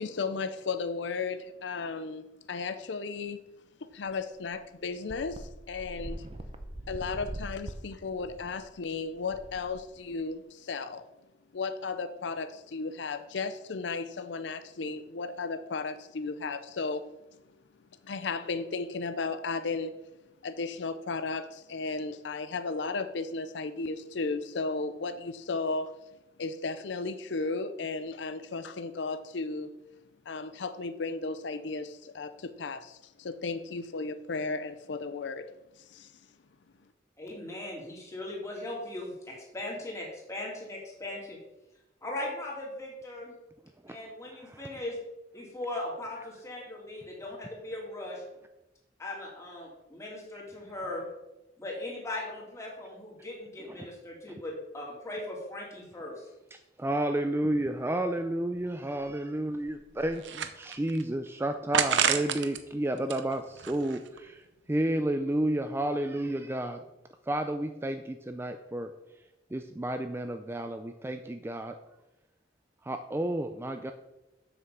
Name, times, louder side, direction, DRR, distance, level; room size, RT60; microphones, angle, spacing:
voice 1, 0.0-3.4 3.8-6.2 6.9-11.0 11.5-17.1 18.0-19.9 20.4-25.9 26.4-29.7 30.3-35.5 35.8-36.1, left 4 dB, 75° left, 0.5 m, -34 dB
sound 1, 4.1-4.2 4.5-4.6 5.1-10.3, right 1 dB, 30° right, 0.8 m, -42 dB
voice 2, 37.2-41.4 42.0-43.3 43.9-45.0 45.3-48.2 49.0-51.1 51.6-56.3, left 1 dB, 15° left, 2.7 m, -39 dB
voice 3, 44.3-44.6 53.6-53.8 54.3-54.4 56.5-64.4 64.7-66.8 67.3-68.9 69.5-71.8 72.8-73.9, right 1 dB, 15° right, 0.4 m, -31 dB
sound 2, 58.6-58.7 59.0-59.1 59.7-61.0 61.7-62.6 63.0-64.2, right 7 dB, 85° right, 0.8 m, -30 dB
7.9 x 5.9 x 6.8 m
head